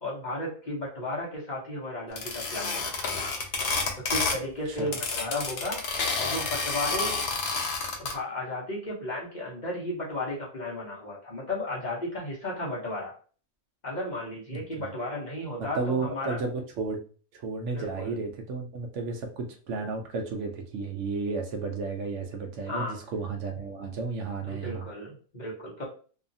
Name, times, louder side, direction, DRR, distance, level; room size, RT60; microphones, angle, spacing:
voice 1, 0.0-3.1 4.0-5.8 6.2-7.2 8.0-13.1 13.8-16.4 17.7-18.1 22.7-23.0 24.4-25.8, left 1 dB, 40° left, -5 dB, 0.9 m, -34 dB
sound 1, 2.2-4.5 4.7-8.1, left 4 dB, 65° left, 0.9 m, -29 dB
voice 2, 14.5-14.9 15.6-17.0 17.3-24.9, right 4 dB, 70° right, 3 dB, 0.9 m, -33 dB
2.7 x 2.4 x 2.6 m, 0.40 s
omnidirectional pair, 1.4 m